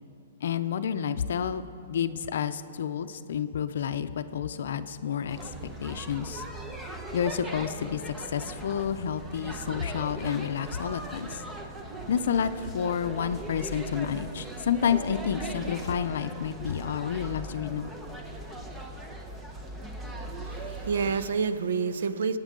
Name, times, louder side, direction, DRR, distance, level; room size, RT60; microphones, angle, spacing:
voice 1, 0.4-5.5 5.8-6.4 7.1-11.4 12.1-17.9, left 8 dB, 70° left, 11 dB, 0.5 m, -30 dB
sound 1, 5.3-21.3, right 2 dB, 10° right, 0.9 m, -39 dB
voice 2, 20.5-22.4, right 5 dB, 75° right, 13 dB, 0.6 m, -28 dB
23.5 x 8.9 x 3.8 m, 2.6 s
hypercardioid pair, 145°, 0 cm